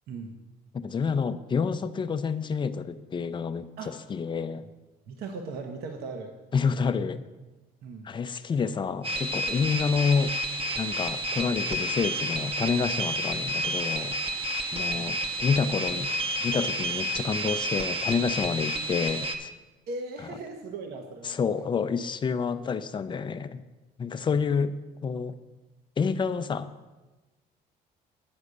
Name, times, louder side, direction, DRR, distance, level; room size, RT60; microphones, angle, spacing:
voice 1, 0.7-4.7 6.5-7.2 8.0-10.3 10.8-14.1 14.7-16.1 16.4-19.5 21.2-23.6 24.0-24.7 25.0-25.4 26.0-26.7, left 5 dB, 30° left, 11 dB, 0.5 m, -28 dB
voice 2, 5.1-6.3 7.8-8.1 14.9-15.1 19.9-21.4, right 3 dB, 70° right, 3 dB, 1.0 m, -38 dB
sound 1, 9.0-19.4, equal, 35° right, 0.8 m, -30 dB
9.5 x 4.9 x 6.7 m, 1.2 s
cardioid pair, 110°, 17 cm